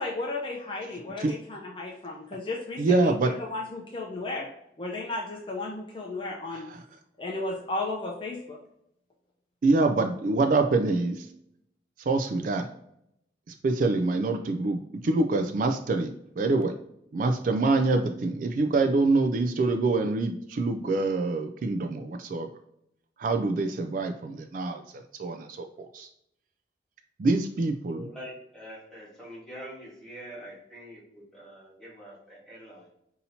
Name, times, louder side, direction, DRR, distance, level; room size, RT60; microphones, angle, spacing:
voice 1, 0.0-4.5 4.8-6.7 7.2-8.6, left 2 dB, 30° left, -2 dB, 0.5 m, -34 dB
voice 2, 2.8-3.3 6.5-6.8 9.6-11.3 12.1-12.7 13.6-16.7 17.1-22.5 23.2-24.8 25.2-26.1 27.2-28.1, right 3 dB, 50° right, 5 dB, 0.3 m, -25 dB
voice 3, 27.9-32.9, equal, 5° left, -7 dB, 1.6 m, -44 dB
5.4 x 2.8 x 2.7 m, 0.77 s
head